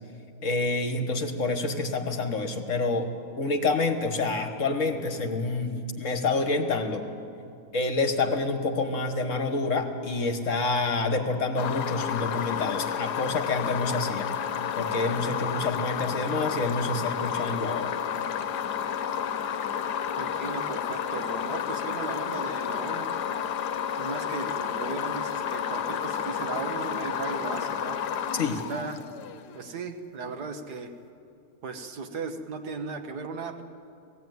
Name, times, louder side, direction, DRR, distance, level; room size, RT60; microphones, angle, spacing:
voice 1, 0.4-3.1 3.4-7.1 7.7-14.3 14.8-17.9 28.3-28.6, left 3 dB, 50° left, 6 dB, 1.6 m, -28 dB
sound 1, 11.6-29.5, left 8 dB, 85° left, 1.3 m, -31 dB
voice 2, 20.2-23.1 24.0-28.0 28.7-29.0 29.5-30.9 31.6-33.6, right 4 dB, 75° right, 6 dB, 1.7 m, -36 dB
18.0 x 15.5 x 9.3 m, 2.6 s
omnidirectional pair, 1.7 m